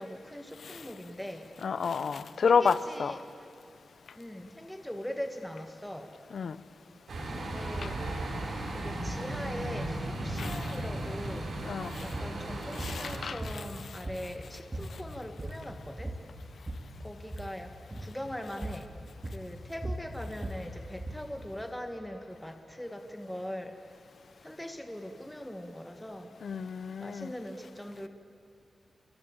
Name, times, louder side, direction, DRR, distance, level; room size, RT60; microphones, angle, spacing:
voice 1, 0.0-1.5 2.5-3.2 4.2-6.1 7.3-8.0 8.7-11.4 12.0-16.1 17.0-17.7 18.0-18.9 19.3-23.7 24.4-26.3 27.0-28.1, equal, 5° left, 5 dB, 1.7 m, -41 dB
voice 2, 1.6-3.2 6.3-6.6 10.4-10.7 11.6-12.0 12.8-13.6 26.4-27.3, left 6 dB, 75° left, 15 dB, 0.9 m, -30 dB
sound 1, 7.1-13.3, right 1 dB, 75° right, 6.3 m, -36 dB
sound 2, 12.1-12.3 12.8-13.0 13.4-14.4 14.7-15.0 15.2-15.7 16.0-16.9 17.2-17.5 17.9-18.1 18.6-18.9 19.2-21.3, right 1 dB, 20° right, 2.7 m, -38 dB
29.0 x 22.5 x 8.8 m, 2.5 s
wide cardioid pair, 120°, 0 cm